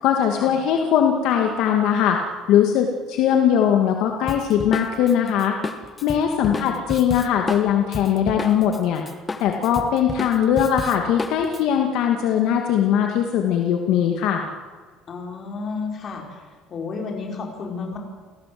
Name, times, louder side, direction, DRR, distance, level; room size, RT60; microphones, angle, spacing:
voice 1, 0.0-2.2 2.5-5.6 6.0-9.0 9.4-14.4, left 9 dB, 65° left, 3 dB, 2.3 m, -20 dB
Drum kit, 4.3-8.8 9.1-11.6, left 4 dB, 15° left, 1.4 m, -31 dB
voice 2, 15.1-16.4 16.7-18.0, left 4 dB, 30° left, 2 dB, 5.1 m, -31 dB
29.0 x 18.0 x 7.9 m, 1.5 s
cardioid pair, 160°, 0 cm